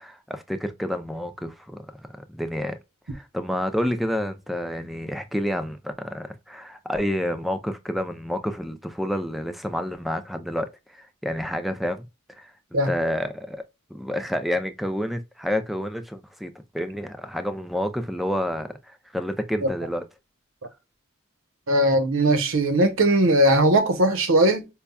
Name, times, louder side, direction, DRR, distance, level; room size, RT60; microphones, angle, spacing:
voice 1, 0.0-1.9 2.3-2.8 3.1-12.1 12.4-12.5 12.9-13.6 13.9-20.0, equal, ahead, 0.4 m, -29 dB
voice 2, 21.7-24.7, right 1 dB, 80° right, 0.8 m, -19 dB
5.3 x 2.3 x 2.2 m
head